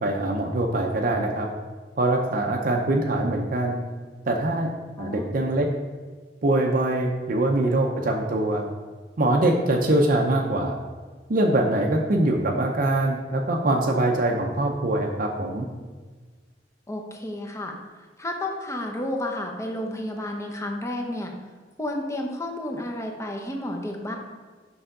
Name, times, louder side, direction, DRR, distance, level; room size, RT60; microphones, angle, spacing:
voice 1, 0.0-1.5 2.0-3.8 4.3-4.7 5.0-5.7 6.4-8.7 9.2-10.8 11.3-15.7, right 1 dB, 50° right, 1 dB, 0.6 m, -23 dB
voice 2, 16.9-17.8 18.2-21.3 21.8-24.2, left 1 dB, 15° left, 2 dB, 0.8 m, -31 dB
6.8 x 5.6 x 3.7 m, 1.4 s
head